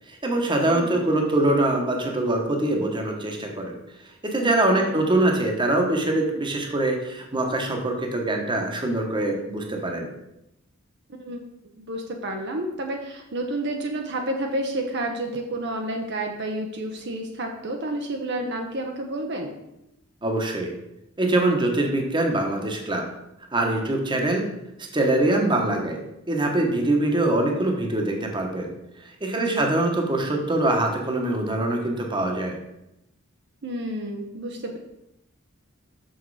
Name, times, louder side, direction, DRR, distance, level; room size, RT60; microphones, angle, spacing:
voice 1, 0.1-3.8 4.2-10.1 20.2-20.7 21.2-23.1 23.5-24.5 24.9-26.0 26.3-28.7 29.0-32.6, right 2 dB, 25° right, 2 dB, 1.2 m, -23 dB
voice 2, 11.1-11.4 11.8-19.6 29.5-29.7 33.6-34.8, right 1 dB, 55° right, 2 dB, 0.9 m, -30 dB
6.5 x 6.3 x 4.8 m, 0.87 s
head